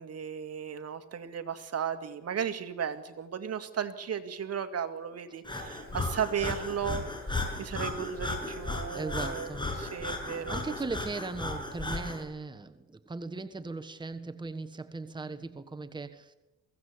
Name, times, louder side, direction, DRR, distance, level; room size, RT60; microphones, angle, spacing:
voice 1, 0.0-9.5 9.8-10.6, right 8 dB, 55° right, 9 dB, 2.1 m, -35 dB
Breathing, 5.4-12.2, left 2 dB, 15° left, 6.4 m, -35 dB
voice 2, 8.9-9.7 10.3-16.3, right 3 dB, 15° right, 10 dB, 1.4 m, -38 dB
23.0 x 16.5 x 8.4 m, 1.1 s
cardioid pair, 90°, 30 cm